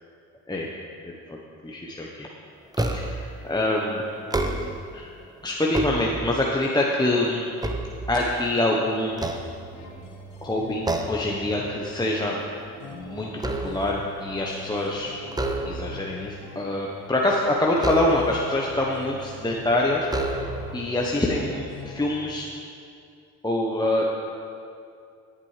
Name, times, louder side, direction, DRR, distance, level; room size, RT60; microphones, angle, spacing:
voice 1, 1.0-1.4 1.6-2.3 2.9-4.0 4.9-5.1 5.4-7.5 8.1-9.3 10.4-12.4 12.9-15.1 15.7-22.5 23.4-24.0, left 1 dB, 10° left, -2 dB, 1.1 m, -25 dB
sound 1, 2.7-3.3 4.2-5.0 5.5-6.6 7.1-8.6 9.1-10.1 10.8-11.3 11.7-12.0 12.4-14.1 15.3-16.1 17.8-18.5 19.3-19.4 20.0-20.8, right 2 dB, 10° right, 0.8 m, -30 dB
sound 2, 8.5-22.2, equal, 85° left, 1.6 m, -43 dB
16.5 x 7.6 x 3.3 m, 2.4 s
hypercardioid pair, 55°, 38 cm